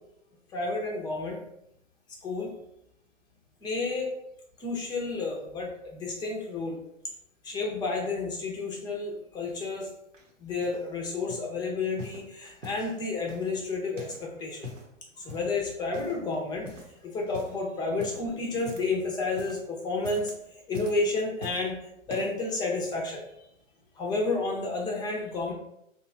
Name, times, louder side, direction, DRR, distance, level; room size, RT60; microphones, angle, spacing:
voice 1, 0.5-1.4 2.2-2.5 3.6-4.1 4.6-6.8 7.4-9.9 10.4-14.7 15.2-21.8 22.1-23.3 24.0-25.5, left 3 dB, 10° left, -1 dB, 0.4 m, -31 dB
sound 1, 10.1-10.9 11.3-11.5 12.0-12.9 13.3-14.3 14.5-14.9 15.3-15.6 15.9-16.3 16.6-17.0 17.2-17.6 18.0-19.0 19.3-19.6 19.9-20.4 20.7-21.7 22.1-22.4 23.1-23.2, left 1 dB, 80° right, 0.9 m, -43 dB
3.0 x 2.2 x 3.6 m, 0.80 s
hypercardioid pair, 120°, 38 cm